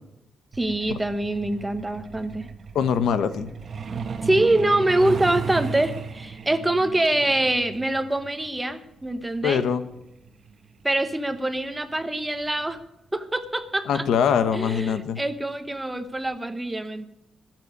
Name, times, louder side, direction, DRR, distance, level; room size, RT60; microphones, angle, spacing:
voice 1, 0.5-2.5 4.2-9.6 10.8-12.8 13.1-14.0 14.5-17.1, right 1 dB, 10° right, 10 dB, 1.0 m, -24 dB
Truck, 0.5-12.8 14.0-14.2 14.6-14.8 15.2-15.4 15.8-15.9 16.3-16.4, right 6 dB, 40° right, 1.3 m, -36 dB
voice 2, 2.7-3.5 9.4-9.8 13.9-15.2, left 7 dB, 90° left, 12 dB, 1.1 m, -23 dB
15.0 x 7.6 x 9.5 m, 0.87 s
wide cardioid pair, 155°, 0 cm